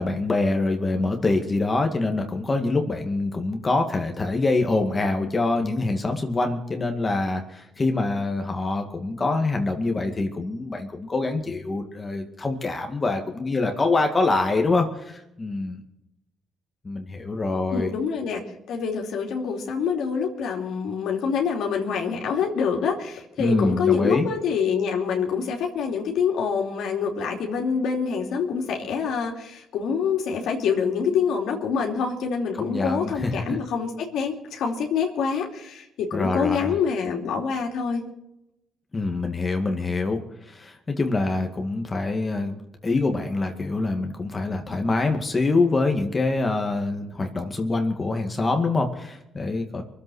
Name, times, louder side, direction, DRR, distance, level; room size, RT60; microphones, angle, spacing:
voice 1, 0.0-15.8 16.8-17.9 23.4-24.3 32.5-33.3 36.1-36.7 38.9-42.6 42.8-49.8, left 3 dB, 30° left, 4 dB, 2.1 m, -25 dB
voice 2, 17.7-38.0, left 6 dB, 80° left, 1 dB, 3.0 m, -26 dB
23.5 x 8.2 x 6.4 m, 0.84 s
cardioid pair, 90°, 0 cm